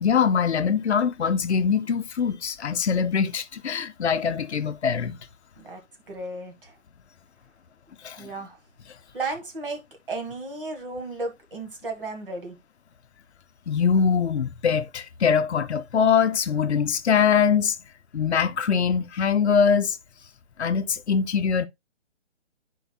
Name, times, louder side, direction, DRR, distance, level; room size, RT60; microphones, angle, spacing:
voice 1, 0.0-5.2 8.0-8.3 13.7-17.8 18.1-20.0 20.6-21.7, left 6 dB, 60° left, 0.6 m, -23 dB
voice 2, 6.1-6.7 8.2-8.6 9.1-9.8 10.1-12.6, right 3 dB, 45° right, 1.6 m, -34 dB
9.3 x 4.6 x 2.2 m
hypercardioid pair, 180°, 37 cm